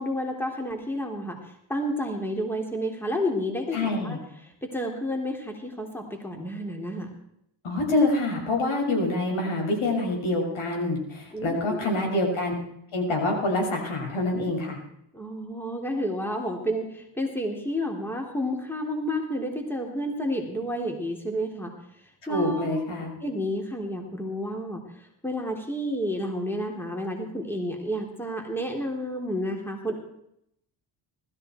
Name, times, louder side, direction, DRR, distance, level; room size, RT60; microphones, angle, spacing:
voice 1, 0.0-1.4 1.7-4.2 4.6-7.1 11.3-11.8 15.1-21.7 22.3-22.8 23.2-24.8 25.2-30.0, equal, 5° left, 2 dB, 3.4 m, -30 dB
voice 2, 3.7-4.2 7.6-12.5 12.9-14.8 22.3-23.2, left 2 dB, 70° left, 0 dB, 6.4 m, -26 dB
20.0 x 13.5 x 4.5 m, 0.76 s
cardioid pair, 80°, 49 cm